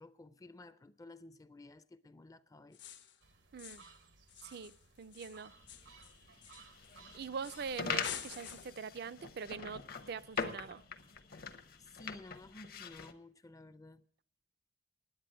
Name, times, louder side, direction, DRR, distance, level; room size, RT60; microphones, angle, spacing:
voice 1, 0.0-2.8 11.8-14.0, left 2 dB, 20° left, 0.4 m, -54 dB
sound 1, 2.7-3.2 3.6-4.0 4.3-7.0 7.4-7.7 8.0-8.9, left 8 dB, 75° left, 1.0 m, -48 dB
sound 2, 3.2-8.6, right 5 dB, 90° right, 1.2 m, -61 dB
voice 2, 3.5-3.9 4.4-5.5 7.1-10.8, right 6 dB, 60° right, 0.4 m, -43 dB
sound 3, 5.5-13.1, left 6 dB, 55° left, 0.9 m, -43 dB
10.5 x 8.4 x 9.0 m
head